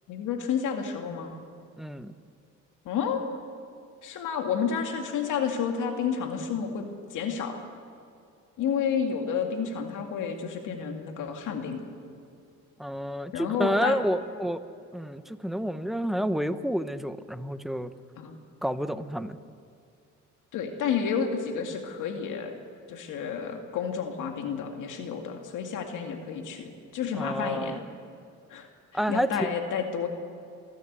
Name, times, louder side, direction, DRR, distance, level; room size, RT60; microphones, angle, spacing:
voice 1, 0.1-1.4 2.9-3.2 4.0-7.6 8.6-11.8 13.3-14.0 18.2-18.4 20.5-22.5 22.9-27.8 28.5-28.7 29.1-30.1, left 7 dB, 85° left, 4 dB, 2.2 m, -30 dB
voice 2, 1.8-2.1 12.8-14.6 14.9-17.9 18.6-19.4 27.2-27.8 28.9-29.5, equal, ahead, 11 dB, 0.9 m, -29 dB
27.5 x 12.0 x 8.2 m, 2.5 s
cardioid pair, 90°, 30 cm